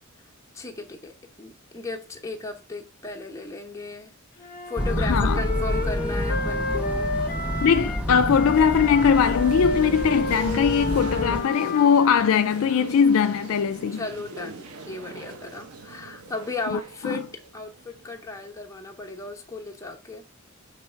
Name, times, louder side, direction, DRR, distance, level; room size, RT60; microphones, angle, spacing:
voice 1, 0.5-7.1 13.9-20.2, left 3 dB, 15° left, 0.9 m, -35 dB
Wind instrument woodwind instrument, 4.4-8.1 8.3-12.3, left 3 dB, 45° left, 0.9 m, -31 dB
sound 1, 4.8-11.4, equal, 5° right, 0.5 m, -28 dB
voice 2, 5.0-5.4 7.6-14.0 16.7-17.2, left 7 dB, 65° left, 0.3 m, -21 dB
sound 2, 8.3-18.4, right 4 dB, 80° right, 0.9 m, -42 dB
6.6 x 3.2 x 4.4 m
head